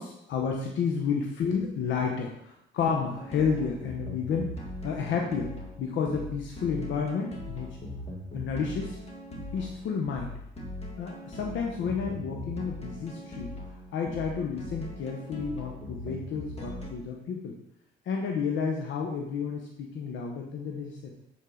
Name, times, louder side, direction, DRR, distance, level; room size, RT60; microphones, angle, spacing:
voice 1, 0.0-4.5 4.8-7.8 8.3-9.0 9.5-10.3 11.0-13.5 13.9-17.6 18.1-21.1, left 6 dB, 75° left, 1 dB, 0.9 m, -31 dB
sound 1, 3.1-16.9, left 1 dB, 30° left, 1.8 m, -40 dB
8.5 x 4.7 x 3.8 m, 0.79 s
cardioid pair, 90°, 20 cm